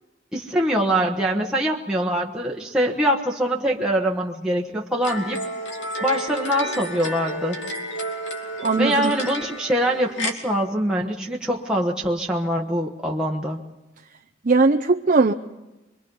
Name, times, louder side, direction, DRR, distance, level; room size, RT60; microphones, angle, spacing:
voice 1, 0.3-5.4 6.0-7.6 8.8-13.6, equal, 5° right, -3 dB, 1.3 m, -23 dB
sound 1, 5.0-10.3, equal, 80° left, 2.8 m, -31 dB
voice 2, 8.6-9.1 14.4-15.3, right 3 dB, 45° right, 4 dB, 0.7 m, -19 dB
26.0 x 22.5 x 5.5 m, 1.0 s
head